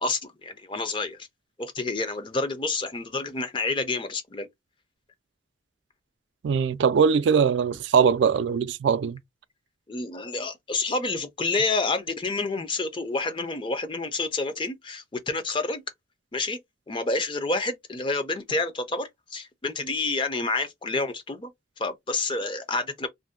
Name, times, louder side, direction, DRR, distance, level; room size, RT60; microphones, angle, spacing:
voice 1, 0.0-1.3 1.6-4.5 9.9-15.8 16.3-16.6 16.9-21.5 21.8-23.1, left 3 dB, 25° left, 0.5 m, -29 dB
voice 2, 6.4-9.2, right 6 dB, 80° right, 0.3 m, -21 dB
2.6 x 2.1 x 3.6 m
head